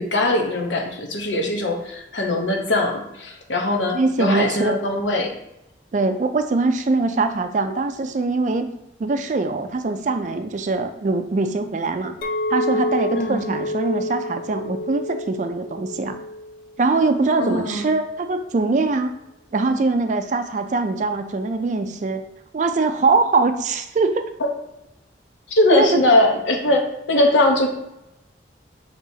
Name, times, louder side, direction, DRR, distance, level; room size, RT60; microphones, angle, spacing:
voice 1, 0.0-5.3 13.2-13.5 17.4-17.9 24.4-24.5 25.5-27.7, left 1 dB, 85° left, 2 dB, 0.9 m, -21 dB
voice 2, 3.9-4.8 5.9-8.7 9.0-12.2 12.5-16.2 16.8-19.1 19.5-22.2 22.5-24.2 25.7-26.0, right 3 dB, 40° right, 8 dB, 0.3 m, -22 dB
Chink clink, 12.2-17.4, left 1 dB, 50° left, 0.3 m, -29 dB
6.2 x 2.9 x 2.8 m, 0.87 s
head